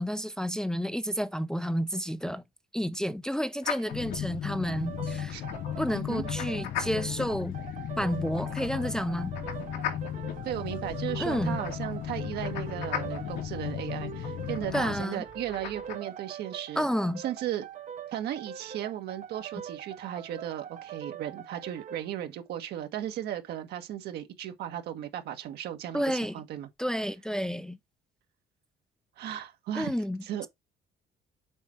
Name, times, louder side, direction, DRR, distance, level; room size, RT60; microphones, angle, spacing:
voice 1, 0.0-2.4 2.7-5.4 5.8-7.5 8.0-9.3 11.2-11.6 14.7-15.2 16.8-17.2 25.9-26.4 26.8-27.8 29.7-30.5, equal, 5° left, 0.5 m, -30 dB
sound 1, 3.6-16.0, left 8 dB, 85° left, 2.6 m, -41 dB
sound 2, 3.9-15.1, left 11 dB, 55° left, 0.4 m, -36 dB
sound 3, 4.7-22.1, right 8 dB, 45° right, 0.8 m, -43 dB
voice 2, 5.9-6.2 10.4-16.9 17.2-17.7 18.1-26.7 29.2-29.9 30.2-30.5, right 11 dB, 75° right, 1.5 m, -36 dB
7.1 x 4.3 x 4.4 m
cardioid pair, 110°, 17 cm